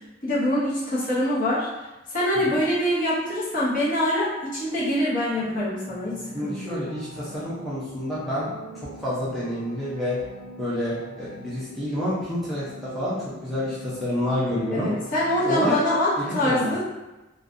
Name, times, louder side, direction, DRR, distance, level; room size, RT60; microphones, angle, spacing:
voice 1, 0.2-1.7 2.1-6.8 14.7-16.8, left 1 dB, 40° left, -8 dB, 0.8 m, -24 dB
sound 1, 5.3-15.8, equal, 60° right, 0.5 m, -43 dB
voice 2, 6.3-10.2 10.6-14.9 15.5-15.8 16.2-16.7, left 1 dB, ahead, -10 dB, 0.5 m, -28 dB
2.6 x 2.2 x 2.5 m, 1.1 s
head